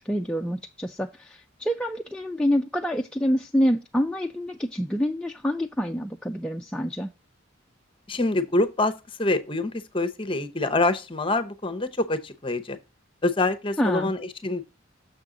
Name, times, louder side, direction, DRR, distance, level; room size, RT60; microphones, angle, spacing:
voice 1, 0.0-7.1 13.8-14.1, equal, 5° left, 0.3 m, -27 dB
voice 2, 8.1-12.8 13.2-14.6, left 2 dB, 25° left, 0.7 m, -26 dB
6.9 x 6.1 x 3.7 m
head